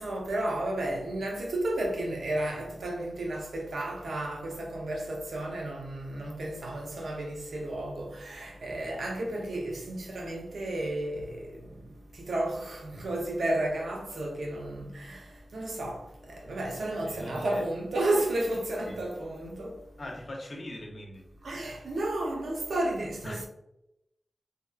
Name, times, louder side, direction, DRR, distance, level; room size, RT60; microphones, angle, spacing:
voice 1, 0.0-11.4 12.3-15.2 15.5-16.0 16.3-19.7 21.4-23.5, right 1 dB, 90° right, 0.6 m, -32 dB
voice 2, 17.0-17.6 18.9-19.0 20.0-21.3 21.5-21.7 23.2-23.4, left 1 dB, 55° left, 0.6 m, -41 dB
2.6 x 2.3 x 2.3 m
cardioid pair, 50°, 0 cm